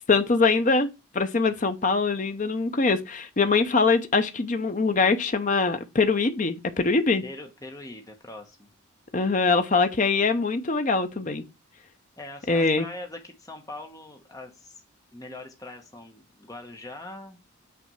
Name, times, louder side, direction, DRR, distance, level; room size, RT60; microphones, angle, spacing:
voice 1, 0.1-7.2 9.1-11.4 12.5-12.9, left 4 dB, 35° left, 0.6 m, -23 dB
voice 2, 7.2-8.7 12.2-14.8 15.1-17.4, left 2 dB, 15° left, 1.0 m, -42 dB
6.0 x 3.4 x 5.5 m
head